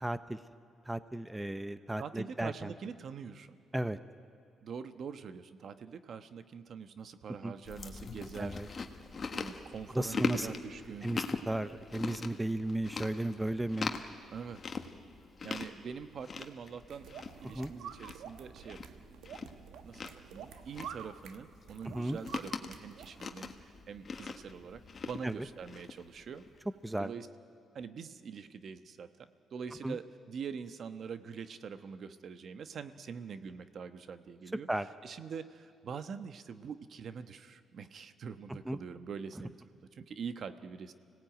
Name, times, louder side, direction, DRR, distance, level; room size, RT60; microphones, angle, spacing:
voice 1, 0.0-0.4 0.9-2.7 3.7-4.0 7.4-7.5 8.4-8.7 9.9-10.5 11.0-13.9 17.4-17.7 21.8-22.2 25.2-25.4 26.8-27.1 29.8-30.0 34.7-34.9 38.5-38.8, right 1 dB, 10° right, 12 dB, 0.7 m, -35 dB
voice 2, 2.0-3.6 4.6-8.8 9.3-11.2 14.3-14.8 15.4-17.1 17.3-19.0 19.4-26.4 27.0-27.3 27.7-34.7 35.0-40.9, right 6 dB, 55° right, 10 dB, 1.1 m, -44 dB
Chewing mastication, 7.7-26.6, left 4 dB, 40° left, 1.5 m, -42 dB
sound 1, 16.9-23.4, right 8 dB, 85° right, 1.1 m, -49 dB
25.0 x 18.0 x 9.1 m, 2.4 s
cardioid pair, 90°, 0 cm